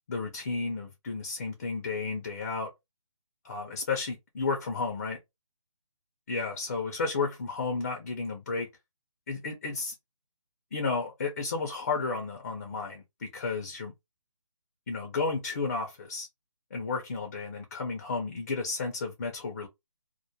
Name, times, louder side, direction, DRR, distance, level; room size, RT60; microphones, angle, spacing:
voice 1, 0.1-2.7 3.4-5.2 6.3-8.7 9.3-9.9 10.7-13.9 14.9-16.3 16.7-19.7, left 4 dB, 30° left, 0.4 m, -32 dB
2.2 x 2.1 x 2.6 m
hypercardioid pair, 160°, 17 cm